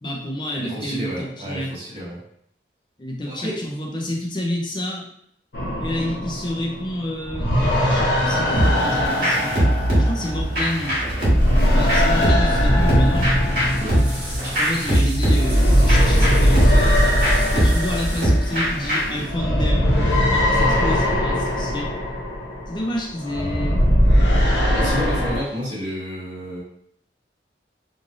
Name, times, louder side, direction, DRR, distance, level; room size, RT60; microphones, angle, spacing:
voice 1, 0.0-1.7 3.0-5.0 5.8-9.5 10.0-11.0 11.7-13.4 14.5-16.9 17.5-21.9 22.7-23.8, left 1 dB, 25° left, -1 dB, 0.5 m, -29 dB
voice 2, 0.5-2.2 3.2-3.6 13.8-14.0 24.3-26.6, equal, 30° right, -11 dB, 1.1 m, -31 dB
sound 1, 5.5-10.9 11.2-25.4, equal, 80° left, 0.7 m, -20 dB
sound 2, 8.6-19.2, equal, 55° right, 1.5 m, -22 dB
sound 3, 13.0-18.3, equal, 10° right, 1.1 m, -37 dB
3.2 x 2.5 x 2.5 m, 0.71 s
head